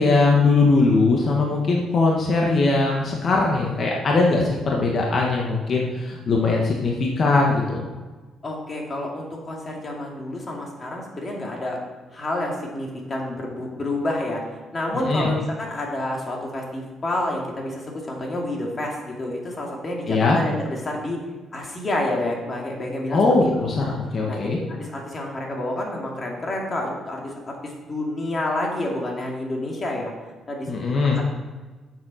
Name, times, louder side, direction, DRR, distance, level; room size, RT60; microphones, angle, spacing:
voice 1, 0.0-7.8 15.0-15.3 20.1-20.4 23.1-24.6 30.7-31.2, left 3 dB, 50° left, -1 dB, 1.5 m, -20 dB
voice 2, 8.4-11.8 12.1-14.4 14.7-21.2 21.5-23.7 24.3-30.1 30.5-31.3, left 1 dB, 35° left, -1 dB, 2.7 m, -29 dB
7.7 x 7.4 x 5.8 m, 1.3 s
cardioid pair, 90°, 0 cm